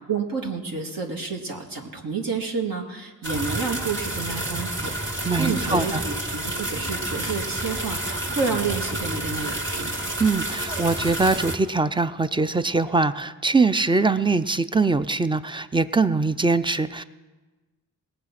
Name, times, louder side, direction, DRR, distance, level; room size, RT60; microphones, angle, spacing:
voice 1, 0.1-6.2 6.4-10.0, right 5 dB, 65° right, 0 dB, 1.7 m, -29 dB
sound 1, 3.2-11.6, right 1 dB, 30° right, 2.1 m, -29 dB
voice 2, 5.2-6.0 10.2-17.0, right 3 dB, 15° right, 13 dB, 0.4 m, -22 dB
19.0 x 7.6 x 5.9 m, 1.3 s
cardioid pair, 80°, 38 cm